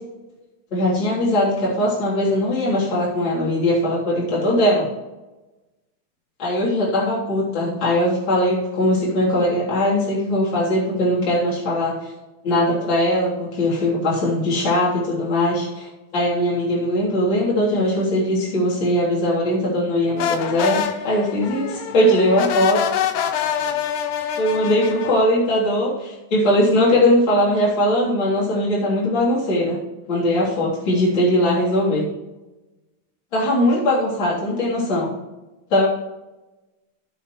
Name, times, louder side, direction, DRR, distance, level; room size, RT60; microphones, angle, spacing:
voice 1, 0.7-4.9 6.4-12.1 12.4-22.8 24.4-29.8 30.1-32.1 33.3-35.1 35.7-35.9, left 1 dB, 35° left, -7 dB, 3.7 m, -20 dB
sound 1, 20.2-25.2, left 9 dB, 75° left, 2.1 m, -25 dB
16.0 x 7.2 x 3.1 m, 1.1 s
omnidirectional pair, 4.2 m